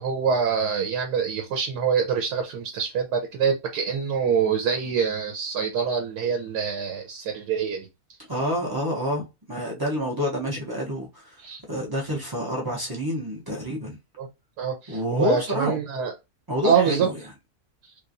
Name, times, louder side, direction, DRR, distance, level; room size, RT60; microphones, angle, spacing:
voice 1, 0.0-7.9 11.4-11.6 14.2-14.3 14.6-16.1 16.6-17.1, right 6 dB, 90° right, 1.3 m, -25 dB
voice 2, 8.3-11.4 11.7-14.0 14.9-15.8 16.5-17.2, equal, 30° right, 0.4 m, -28 dB
3.2 x 2.9 x 2.5 m
omnidirectional pair, 1.7 m